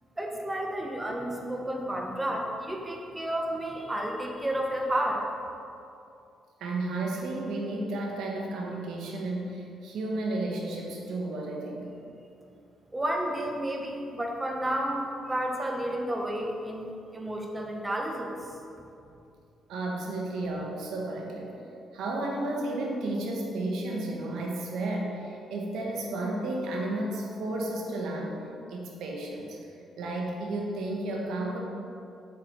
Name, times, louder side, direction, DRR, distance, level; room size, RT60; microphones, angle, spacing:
voice 1, 0.2-5.2 12.9-18.4, right 1 dB, 15° right, 1 dB, 1.3 m, -31 dB
voice 2, 6.6-11.9 19.7-21.6 21.9-28.4 28.7-29.6 30.0-31.6, right 2 dB, 80° right, 0 dB, 1.5 m, -32 dB
8.0 x 4.8 x 6.8 m, 2.7 s
cardioid pair, 90°, 0 cm